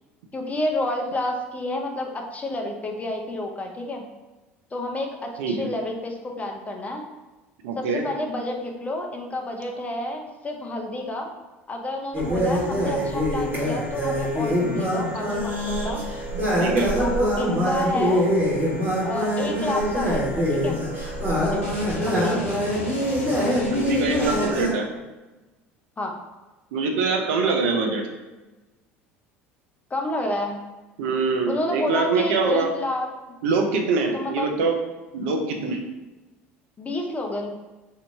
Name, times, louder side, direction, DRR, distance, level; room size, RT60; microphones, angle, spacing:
voice 1, 0.3-4.0 4.7-7.0 7.7-11.3 11.7-16.0 17.0-18.3 19.0-20.8 21.3-21.6 22.0-22.5 26.0-26.2 29.9-30.6 31.5-33.1 34.1-34.5 36.8-37.5, left 1 dB, 20° left, 2 dB, 0.6 m, -29 dB
voice 2, 5.4-5.7 7.6-8.0 16.6-16.9 23.7-24.9 26.7-28.1 31.0-32.7 33.4-34.7 35.1-35.8, right 4 dB, 65° right, 3 dB, 0.5 m, -24 dB
sound 1, 12.1-24.7, equal, 30° right, 1.4 m, -24 dB
sound 2, 21.6-24.8, left 1 dB, 80° left, 0.8 m, -36 dB
2.8 x 2.6 x 3.4 m, 1.1 s
figure-of-eight pair, 70°, 7 cm